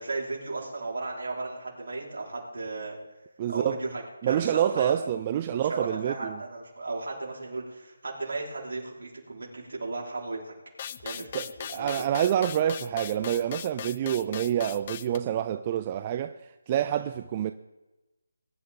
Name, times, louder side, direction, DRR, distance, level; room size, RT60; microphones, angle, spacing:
voice 1, 0.0-3.0 3.5-5.1 5.5-10.5 11.0-12.1 16.9-17.1, right 3 dB, 65° right, 4.8 m, -35 dB
voice 2, 3.4-3.8 4.2-6.4 11.1-11.4 11.7-16.4 16.7-17.5, right 10 dB, 25° right, 0.4 m, -27 dB
sound 1, 10.8-15.2, left 9 dB, 30° left, 0.4 m, -39 dB
21.5 x 11.5 x 3.9 m
figure-of-eight pair, 160°, 0 cm